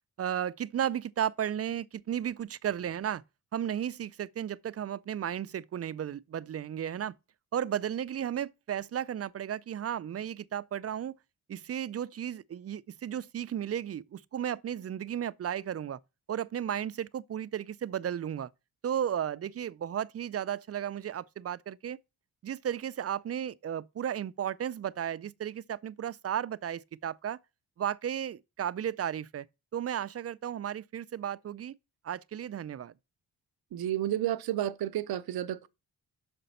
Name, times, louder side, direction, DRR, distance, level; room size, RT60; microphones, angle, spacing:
voice 1, 0.2-3.2 3.5-7.2 7.5-11.1 11.5-16.0 16.3-18.5 18.8-22.0 22.4-27.4 27.8-29.5 29.7-31.7 32.0-32.9, right 9 dB, 40° right, 0.4 m, -34 dB
voice 2, 33.7-35.7, right 12 dB, 85° right, 0.6 m, -31 dB
6.6 x 5.1 x 5.5 m
cardioid pair, 90°, 37 cm